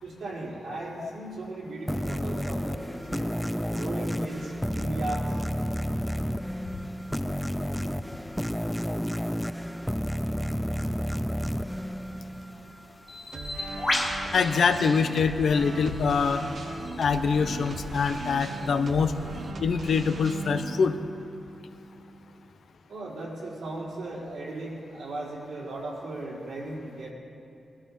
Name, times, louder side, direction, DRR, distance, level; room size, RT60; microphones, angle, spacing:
voice 1, 0.0-3.3 3.7-5.4 22.9-27.1, right 2 dB, 85° right, -6 dB, 4.4 m, -37 dB
sound 1, 1.9-13.0, equal, 5° left, 0.5 m, -31 dB
Bird, 13.1-19.5, left 2 dB, 30° left, 2.3 m, -36 dB
sound 2, 13.3-22.5, right 3 dB, 65° right, 1.3 m, -39 dB
voice 2, 14.3-16.4 17.0-19.1 19.6-20.9, left 5 dB, 70° left, 9 dB, 0.7 m, -24 dB
20.0 x 12.5 x 4.4 m, 2.7 s
cardioid pair, 70°, 0 cm